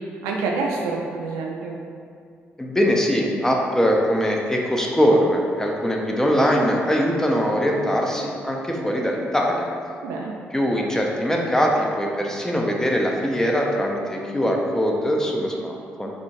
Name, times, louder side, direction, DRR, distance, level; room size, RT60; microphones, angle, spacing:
voice 1, 0.0-1.8 10.0-10.3, right 3 dB, 85° right, -1 dB, 0.3 m, -27 dB
voice 2, 2.6-9.7 10.5-16.1, equal, 10° left, -1 dB, 0.5 m, -22 dB
3.6 x 2.3 x 2.6 m, 2.3 s
supercardioid pair, 50°, 5 cm